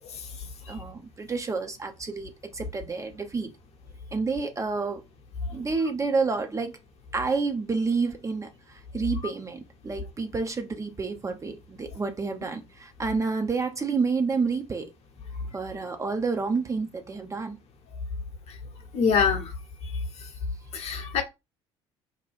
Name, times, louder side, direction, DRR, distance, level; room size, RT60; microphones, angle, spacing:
voice 1, 0.7-3.5 4.1-5.1 5.5-6.8 7.1-14.9 15.5-17.6, right 4 dB, 20° right, 0.5 m, -29 dB
voice 2, 18.9-19.5 20.7-21.2, left 6 dB, 45° left, 0.8 m, -23 dB
2.7 x 2.2 x 3.3 m
figure-of-eight pair, 55°, 15 cm